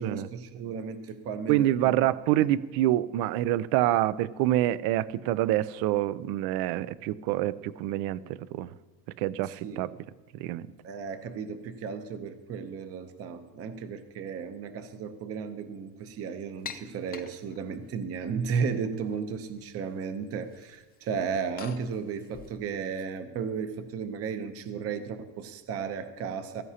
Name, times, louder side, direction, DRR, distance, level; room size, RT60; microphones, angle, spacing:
voice 1, 0.0-2.0 2.3-2.5 9.4-9.8 10.8-26.6, right 6 dB, 40° right, 9 dB, 0.8 m, -34 dB
voice 2, 1.5-8.7 9.2-9.9 10.4-10.7, right 14 dB, 75° right, 18 dB, 0.6 m, -26 dB
sound 1, 16.6-17.9 18.6-19.2 19.5-20.1 20.3-23.0, left 8 dB, 25° left, 0.6 m, -46 dB
16.0 x 14.0 x 2.8 m, 1.2 s
cardioid pair, 165°, 38 cm